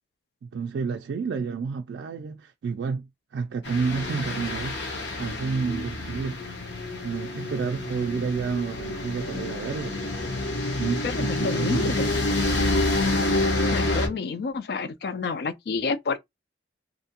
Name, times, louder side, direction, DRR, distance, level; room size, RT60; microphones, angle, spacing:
voice 1, 0.4-4.8 5.2-6.4 7.0-10.0 10.8-12.0, right 5 dB, 75° right, 0.3 m, -30 dB
sound 1, 3.6-14.1, left 2 dB, 75° left, 0.8 m, -28 dB
voice 2, 11.0-12.1 13.7-16.2, left 4 dB, 60° left, 0.3 m, -29 dB
2.6 x 2.1 x 2.8 m
head